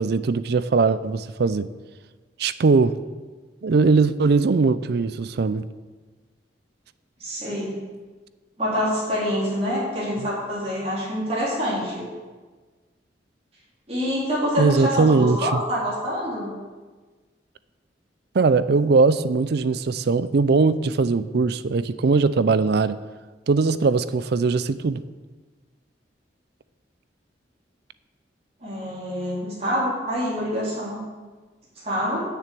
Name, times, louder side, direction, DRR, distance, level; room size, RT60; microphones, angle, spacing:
voice 1, 0.0-1.7 2.4-2.9 3.6-5.7 14.6-15.6 18.3-23.0 23.5-25.0, right 4 dB, 65° right, 15 dB, 0.4 m, -20 dB
voice 2, 7.2-7.8 8.6-12.1 13.9-16.5 28.6-31.0 31.8-32.2, equal, 35° right, -7 dB, 3.6 m, -26 dB
9.6 x 6.8 x 8.4 m, 1.3 s
head